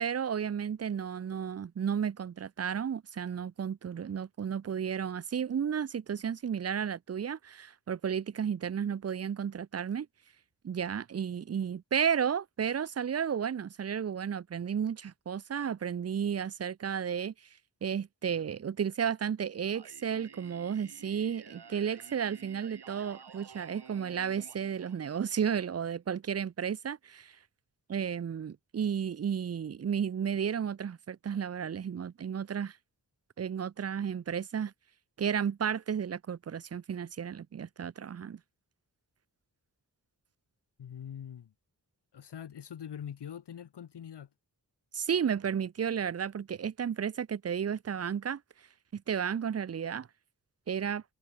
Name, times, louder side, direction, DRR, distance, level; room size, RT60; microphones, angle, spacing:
voice 1, 0.0-10.1 10.6-17.3 17.8-27.4 27.9-32.8 33.4-34.7 35.2-38.4 44.9-48.4 48.9-50.1 50.7-51.0, right 8 dB, 40° right, 0.5 m, -33 dB
Singing, 19.7-25.7, right 6 dB, 75° right, 2.4 m, -52 dB
voice 2, 40.8-41.5 42.1-44.3, left 9 dB, 85° left, 0.9 m, -43 dB
cardioid pair, 55°, 40 cm